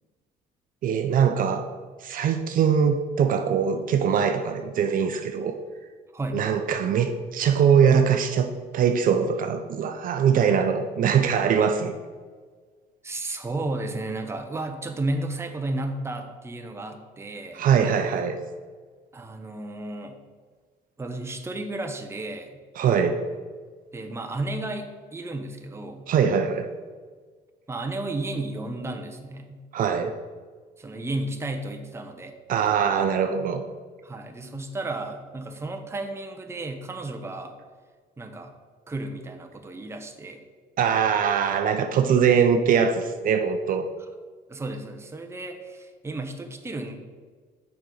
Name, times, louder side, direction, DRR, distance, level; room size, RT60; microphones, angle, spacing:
voice 1, 0.8-1.7 2.0-5.5 6.3-12.0 17.5-18.4 22.8-23.2 26.1-26.7 29.7-30.1 32.5-33.6 40.8-43.9, right 7 dB, 55° right, 7 dB, 0.5 m, -22 dB
voice 2, 13.0-17.6 19.1-20.2 21.0-22.6 23.9-26.1 27.7-29.6 30.8-32.3 34.0-37.5 38.2-38.5 38.9-40.4 44.0-44.1 44.5-47.0, right 2 dB, 15° right, 5 dB, 0.7 m, -33 dB
6.9 x 5.2 x 3.9 m, 1.5 s
cardioid pair, 110°, 17 cm